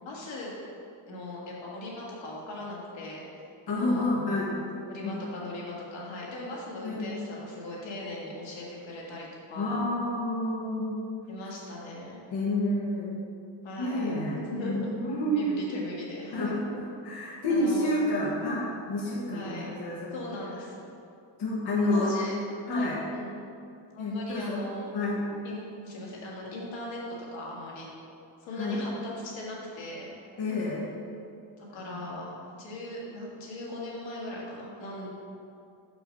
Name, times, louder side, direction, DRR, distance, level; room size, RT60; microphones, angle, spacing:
voice 1, 0.0-0.5 1.1-3.2 3.7-4.1 4.8-9.8 11.3-12.2 13.6-14.9 15.2-16.5 17.5-17.9 19.3-19.7 20.1-20.9 21.9-23.3 23.9-24.9 25.4-27.9 28.4-30.2 31.6-35.1, left 1 dB, 85° left, -4 dB, 1.9 m, -39 dB
voice 2, 3.7-4.5 5.0-5.3 6.8-7.1 9.6-10.9 12.3-13.1 13.8-15.5 16.3-20.2 21.4-22.1 22.7-23.0 24.0-25.2 28.5-28.8 30.4-30.9 31.8-32.2, left 1 dB, 60° left, -5 dB, 1.3 m, -29 dB
6.6 x 5.9 x 5.3 m, 2.5 s
wide cardioid pair, 165°, 44 cm